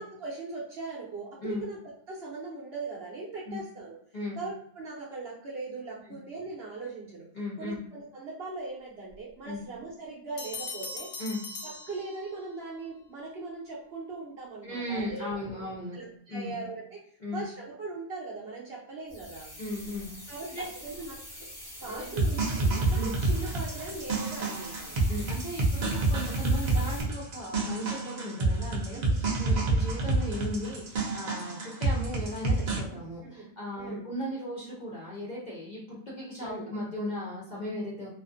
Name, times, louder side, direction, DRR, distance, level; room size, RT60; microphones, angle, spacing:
voice 1, 0.0-4.0 4.4-7.3 7.6-11.1 11.6-15.3 15.5-15.7 15.9-17.0 17.3-19.5 20.3-21.2 21.8-25.0 28.9-29.2 32.9-33.5 33.8-34.0 36.4-36.7, right 3 dB, 55° right, -3 dB, 0.7 m, -40 dB
voice 2, 7.3-7.8 9.4-9.6 11.2-11.4 14.6-16.0 16.3-16.5 17.2-17.4 19.6-20.7 21.8-22.2 22.9-23.1 25.1-38.1, left 1 dB, 50° left, -7 dB, 0.5 m, -37 dB
Bell, 10.4-12.6, left 3 dB, 65° left, 0.9 m, -40 dB
sound 1, 19.1-27.0, left 1 dB, 20° left, 1.0 m, -45 dB
sound 2, 22.2-32.8, right 2 dB, 80° right, 0.3 m, -28 dB
2.5 x 2.4 x 2.5 m, 0.66 s
omnidirectional pair, 1.5 m